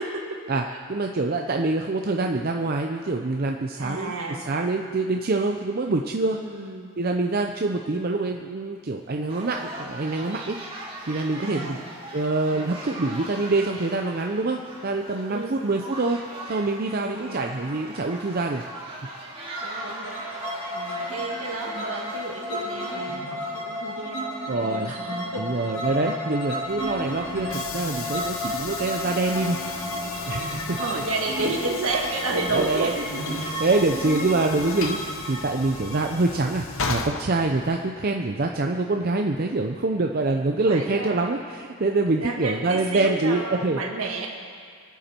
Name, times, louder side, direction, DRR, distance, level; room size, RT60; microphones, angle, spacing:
voice 1, 0.0-0.8 3.8-4.5 6.3-6.9 11.4-11.9 12.5-12.8 15.3-15.6 17.0-17.5 19.6-20.3 20.7-25.8 30.7-33.3 40.7-41.4 42.1-44.3, right 2 dB, 70° right, 0 dB, 1.9 m, -32 dB
voice 2, 0.9-6.4 7.0-10.6 11.1-11.8 12.1-18.6 24.5-24.9 25.4-29.6 30.3-30.8 32.5-32.9 33.3-43.8, right 3 dB, 40° right, 3 dB, 0.5 m, -25 dB
sound 1, 9.3-23.2, right 1 dB, 25° right, 2.1 m, -39 dB
sound 2, 19.5-37.3, equal, 85° left, 4.3 m, -32 dB
Train / Sliding door, 26.6-38.0, left 4 dB, 65° left, 0.9 m, -36 dB
24.5 x 8.2 x 4.4 m, 2.1 s
head